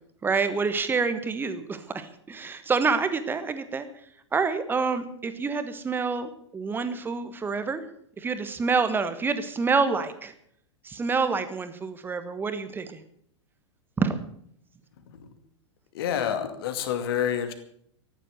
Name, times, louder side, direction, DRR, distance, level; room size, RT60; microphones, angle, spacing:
voice 1, 0.2-3.9 4.3-7.8 8.2-10.3 10.8-13.0 14.0-14.2, right 4 dB, 15° right, 11 dB, 1.5 m, -27 dB
voice 2, 15.9-17.5, left 9 dB, 50° left, 8 dB, 2.4 m, -28 dB
14.5 x 11.0 x 7.9 m, 0.67 s
figure-of-eight pair, 95°, 16 cm